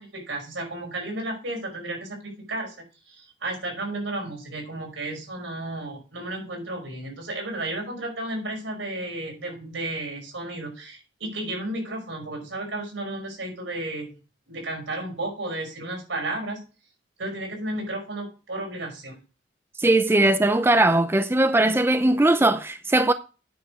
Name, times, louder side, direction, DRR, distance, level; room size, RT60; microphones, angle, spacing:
voice 1, 0.0-2.8 3.1-14.2 14.5-16.6 17.2-19.2, right 2 dB, 85° right, 5.3 m, -33 dB
voice 2, 19.8-23.1, right 2 dB, 10° right, 0.4 m, -19 dB
9.2 x 6.3 x 4.8 m
head